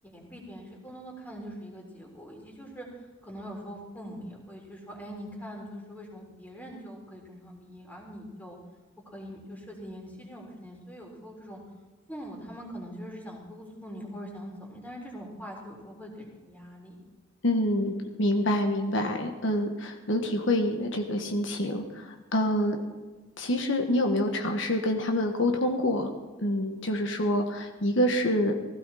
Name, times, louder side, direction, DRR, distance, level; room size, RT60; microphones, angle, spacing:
voice 1, 0.0-8.6 9.1-11.6 12.1-17.0, equal, 10° left, -1 dB, 3.6 m, -43 dB
voice 2, 17.4-17.9 18.2-22.8 23.4-26.1 26.4-28.5, left 1 dB, 70° left, 4 dB, 1.5 m, -26 dB
16.0 x 16.0 x 4.3 m, 1.3 s
head